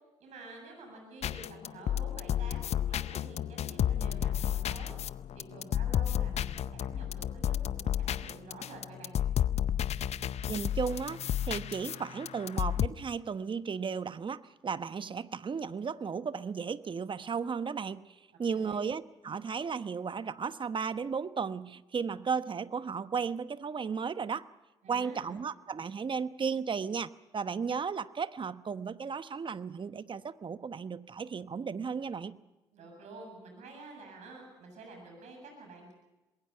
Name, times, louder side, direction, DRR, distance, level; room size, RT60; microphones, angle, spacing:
voice 1, 0.2-5.0 5.3-9.2 18.5-18.8 24.8-25.4 32.7-35.9, right 3 dB, 65° right, 2 dB, 7.7 m, -49 dB
sound 1, 1.2-12.9, left 10 dB, 60° left, 0.7 m, -32 dB
voice 2, 10.5-24.4 24.9-32.4, right 6 dB, 40° right, 13 dB, 1.1 m, -35 dB
27.0 x 21.0 x 5.7 m, 1.1 s
hypercardioid pair, 45°, 13 cm